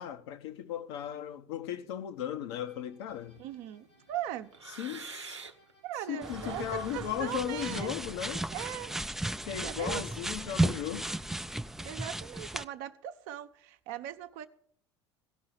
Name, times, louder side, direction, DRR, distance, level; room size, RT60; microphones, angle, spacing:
voice 1, 0.0-3.4 4.7-5.4 6.1-8.5 9.5-11.1, left 10 dB, 65° left, 0.9 m, -36 dB
sound 1, 2.6-8.5, left 2 dB, 85° left, 3.4 m, -67 dB
sound 2, 3.1-5.7 6.0-9.1, right 5 dB, 90° right, 0.8 m, -48 dB
voice 2, 3.4-4.5 5.8-7.9 8.5-8.9 9.6-10.0 11.8-14.5, right 12 dB, 60° right, 0.9 m, -39 dB
sound 3, 6.2-12.6, right 1 dB, 5° right, 0.4 m, -35 dB
16.5 x 5.6 x 8.1 m
figure-of-eight pair, 65°, 14 cm